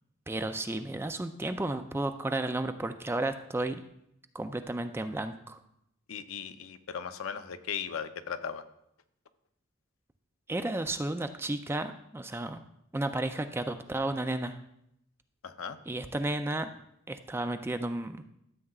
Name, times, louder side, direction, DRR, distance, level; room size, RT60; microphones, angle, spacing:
voice 1, 0.3-3.8 4.3-5.6 10.5-12.6 12.9-14.6 15.9-16.7 17.1-18.2, right 2 dB, 10° right, 8 dB, 0.3 m, -33 dB
voice 2, 6.1-8.6 15.4-15.8, left 7 dB, 75° left, 10 dB, 0.6 m, -37 dB
13.0 x 7.5 x 2.4 m, 0.78 s
head